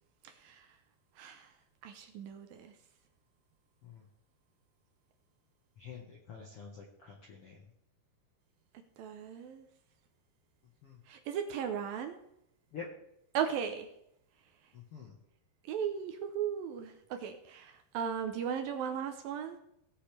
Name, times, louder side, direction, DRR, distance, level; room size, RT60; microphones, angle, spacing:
voice 1, 0.2-0.7 1.2-1.5 1.8-2.8 9.0-9.7 11.1-12.2 13.3-13.9 15.7-19.6, right 8 dB, 75° right, 6 dB, 2.4 m, -37 dB
voice 2, 5.8-7.6 10.8-11.0 12.7-12.8 14.7-15.2, left 6 dB, 65° left, -1 dB, 1.4 m, -47 dB
19.0 x 7.0 x 3.4 m, 0.78 s
omnidirectional pair, 4.7 m